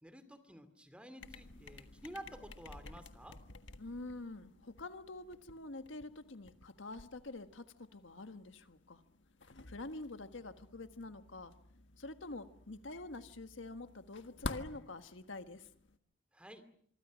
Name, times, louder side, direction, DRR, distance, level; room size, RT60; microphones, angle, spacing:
voice 1, 0.0-3.4 16.3-16.7, right 1 dB, 5° right, 11 dB, 2.4 m, -51 dB
sound 1, 1.2-16.0, left 2 dB, 75° left, 1.6 m, -52 dB
voice 2, 3.8-9.0 9.7-11.5 12.0-15.7, left 2 dB, 90° left, 9 dB, 1.5 m, -47 dB
26.5 x 24.5 x 6.3 m, 0.62 s
head